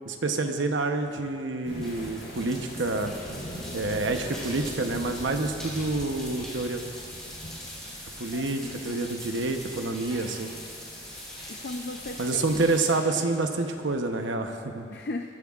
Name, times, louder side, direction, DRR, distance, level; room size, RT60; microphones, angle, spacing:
voice 1, 0.0-3.1 3.7-6.8 8.2-10.5 12.2-14.9, right 3 dB, 90° right, 5 dB, 0.9 m, -28 dB
sound 1, 1.0-14.2, equal, 5° left, 3.5 m, -43 dB
Thunder / Rain, 1.6-12.8, equal, 75° left, 3.4 m, -43 dB
voice 2, 8.3-9.4 11.5-12.6 14.9-15.3, left 2 dB, 55° left, 4 dB, 0.5 m, -38 dB
22.0 x 13.0 x 2.5 m, 2.4 s
head